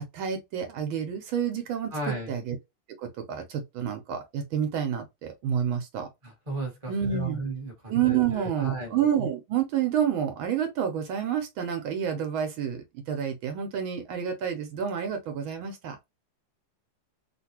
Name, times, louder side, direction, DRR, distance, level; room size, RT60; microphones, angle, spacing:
voice 1, 0.1-2.6 3.0-6.1 6.9-7.4 7.9-16.0, right 8 dB, 75° right, 1.5 m, -29 dB
voice 2, 1.9-2.4 6.2-8.9, right 2 dB, 20° right, 1.0 m, -34 dB
3.5 x 2.5 x 2.8 m
omnidirectional pair, 2.3 m